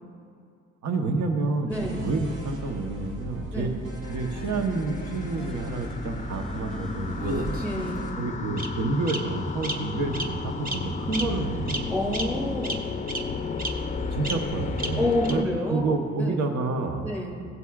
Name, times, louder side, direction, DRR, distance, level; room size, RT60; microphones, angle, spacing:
voice 1, 0.8-3.7 4.1-7.6 8.2-11.9 14.1-15.4 15.7-17.1, right 3 dB, 60° right, 4 dB, 1.0 m, -29 dB
voice 2, 1.7-2.0 3.5-3.7 7.6-8.0 11.9-12.8 15.0-16.4 17.0-17.3, left 1 dB, 10° right, -2 dB, 2.5 m, -28 dB
sound 1, 1.7-8.1, right 1 dB, 80° right, 2.3 m, -38 dB
sound 2, 4.0-15.4, left 4 dB, 25° left, 0.5 m, -34 dB
Bird vocalization bird call bird song, 7.1-7.9 8.6-8.7 9.1-9.2 9.6-9.7 10.1-10.3 10.6-10.8 11.1-11.2 11.7-11.8 12.1-12.2 12.6-12.7 13.1-13.2 13.6-13.7 14.2-14.3 14.8-14.9 15.2-15.3, right 2 dB, 30° right, 1.1 m, -31 dB
16.5 x 8.1 x 2.4 m, 2.4 s
cardioid pair, 90°, 30 cm